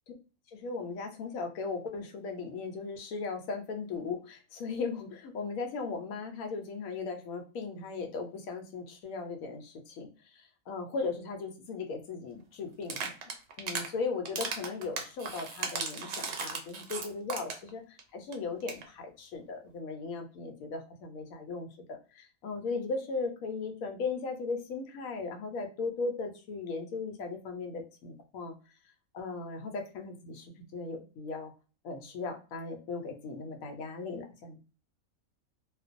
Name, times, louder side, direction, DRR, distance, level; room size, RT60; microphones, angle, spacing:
voice 1, 0.5-13.1 13.6-28.5 29.1-30.5 30.7-31.5 31.8-34.6, left 4 dB, 75° left, 4 dB, 1.0 m, -37 dB
sound 1, 12.8-13.9 14.2-17.7 18.0-18.1 18.3-18.4 18.6-18.8, right 5 dB, 65° right, 0.8 m, -36 dB
2.4 x 2.2 x 2.4 m, 0.36 s
omnidirectional pair, 1.5 m